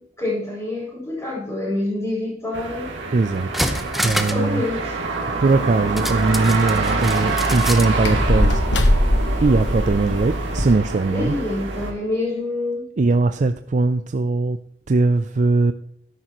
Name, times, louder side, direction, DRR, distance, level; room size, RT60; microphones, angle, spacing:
voice 1, 0.0-2.9 4.1-4.9 11.1-12.9, left 2 dB, 15° left, 5.3 m, -26 dB
sound 1, 2.5-11.9, right 2 dB, 90° right, 2.4 m, -25 dB
sound 2, 2.9-3.0 3.4-4.5 4.8-4.9 6.0-7.9 8.3-8.4, equal, ahead, 0.8 m, -27 dB
voice 2, 3.1-3.7 4.0-4.6 5.4-8.6 9.4-11.4 13.0-14.6 14.9-15.7, right 3 dB, 40° right, 0.4 m, -20 dB
sound 3, 5.5-10.7, left 1 dB, 70° left, 1.2 m, -23 dB
13.0 x 11.0 x 3.1 m
head